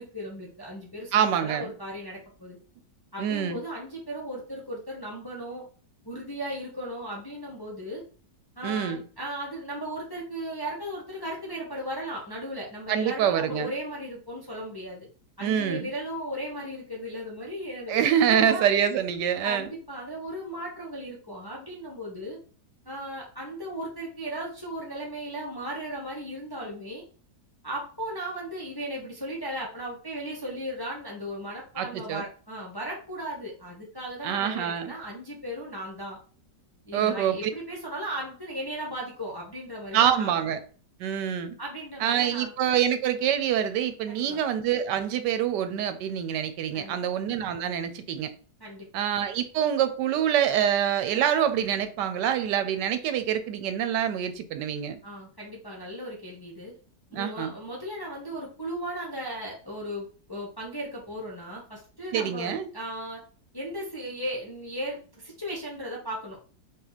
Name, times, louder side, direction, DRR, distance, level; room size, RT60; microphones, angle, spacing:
voice 1, 0.0-2.6 3.1-5.7 6.0-8.0 8.6-15.1 15.4-18.6 19.4-22.4 22.8-27.0 27.6-36.2 36.9-40.3 41.6-42.5 44.1-44.4 46.7-47.1 48.6-48.9 55.0-56.7 57.1-63.2 63.5-66.4, equal, 20° left, -3 dB, 0.8 m, -36 dB
voice 2, 1.1-1.7 3.2-3.6 8.6-9.0 12.9-13.7 15.4-15.9 17.9-19.7 31.8-32.2 34.2-34.9 36.9-37.4 39.9-40.6 41.0-41.5 42.0-48.3 48.9-55.0 57.1-57.5 62.1-62.7, right 9 dB, 85° right, 10 dB, 1.3 m, -26 dB
4.5 x 2.9 x 4.0 m, 0.40 s
omnidirectional pair, 1.8 m